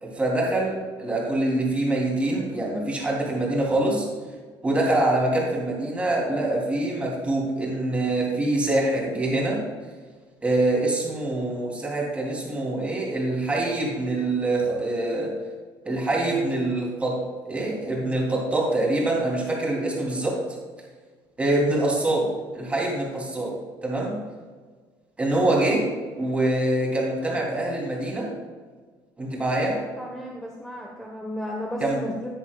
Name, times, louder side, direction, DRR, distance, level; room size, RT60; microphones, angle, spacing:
voice 1, 0.0-4.1 4.6-9.6 10.4-15.3 15.8-17.2 17.5-20.4 21.4-23.6 23.8-24.2 25.2-28.3 29.2-29.8 31.8-32.0, right 2 dB, 15° right, -3 dB, 3.2 m, -25 dB
voice 2, 30.0-32.3, equal, 5° left, -2 dB, 1.2 m, -33 dB
14.5 x 9.8 x 2.4 m, 1.5 s
cardioid pair, 150°, 9 cm